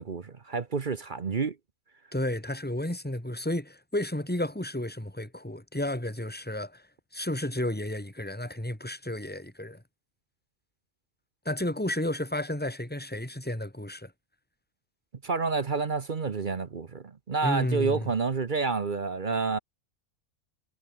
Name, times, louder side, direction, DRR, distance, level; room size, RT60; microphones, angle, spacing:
voice 1, 0.0-1.6 15.2-19.6, right 4 dB, 40° right, 1.0 m, -29 dB
voice 2, 2.1-6.8 7.1-9.8 11.5-14.1 17.4-18.1, left 1 dB, 5° left, 3.3 m, -32 dB
omnidirectional pair, 1.4 m